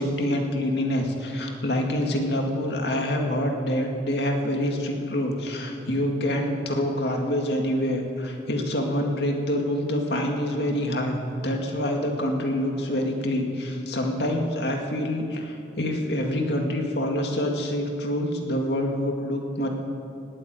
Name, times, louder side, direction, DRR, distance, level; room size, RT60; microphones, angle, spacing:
voice 1, 0.0-11.2 11.4-19.7, left 1 dB, 75° left, 2 dB, 2.2 m, -26 dB
18.5 x 7.8 x 9.1 m, 2.6 s
head